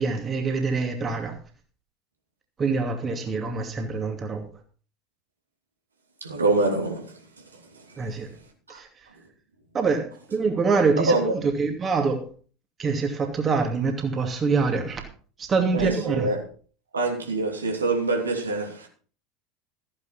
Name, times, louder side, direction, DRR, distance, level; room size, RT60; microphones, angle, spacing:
voice 1, 0.0-1.4 2.6-4.5 8.0-8.3 8.7-8.9 9.7-12.3 12.8-15.0 15.4-16.3, right 4 dB, 25° right, 2.6 m, -25 dB
voice 2, 6.2-7.1 7.9-8.0 8.7-8.8 11.0-11.3 15.7-16.4 16.9-18.9, right 3 dB, 80° right, 3.1 m, -25 dB
14.5 x 10.0 x 4.4 m
figure-of-eight pair, 75°, 0 cm